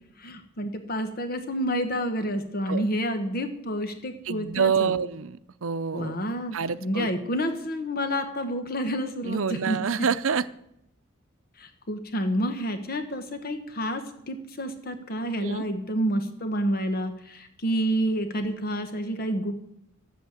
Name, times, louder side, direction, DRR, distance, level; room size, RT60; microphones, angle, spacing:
voice 1, 0.2-4.9 5.9-9.8 11.6-19.5, equal, 50° left, 8 dB, 1.1 m, -29 dB
voice 2, 4.3-6.2 6.5-7.1 9.2-10.5 15.4-15.6, right 6 dB, 85° right, 15 dB, 0.6 m, -27 dB
12.0 x 8.3 x 8.0 m, 0.78 s
head